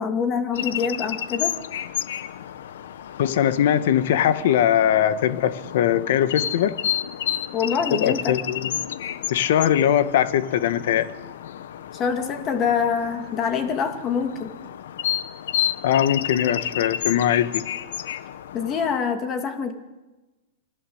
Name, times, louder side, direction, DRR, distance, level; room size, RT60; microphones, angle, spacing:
voice 1, 0.0-1.6 7.5-8.4 11.9-14.5 18.5-19.7, left 6 dB, 25° left, 6 dB, 2.5 m, -25 dB
sound 1, 0.5-19.0, left 10 dB, 80° left, 1.2 m, -31 dB
voice 2, 3.2-6.8 7.9-8.7 9.3-11.1 15.8-17.6, left 10 dB, 65° left, 12 dB, 1.6 m, -21 dB
28.0 x 20.0 x 8.1 m, 1.1 s
supercardioid pair, 165°, 0 cm